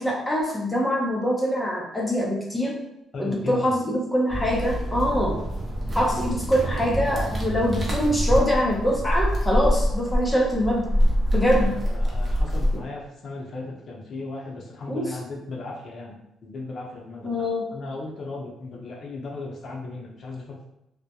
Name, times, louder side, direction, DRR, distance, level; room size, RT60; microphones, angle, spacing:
voice 1, 0.0-2.8 3.2-5.4 5.9-10.9 11.3-11.8 12.7-12.8 14.9-15.2 17.2-17.7, equal, 10° left, -3 dB, 0.6 m, -24 dB
voice 2, 3.1-3.7 11.6-20.6, left 3 dB, 55° left, -1 dB, 0.7 m, -36 dB
sound 1, 4.3-12.8, equal, 25° right, 0.7 m, -25 dB
2.3 x 2.1 x 2.7 m, 0.86 s
cardioid pair, 90°, 0 cm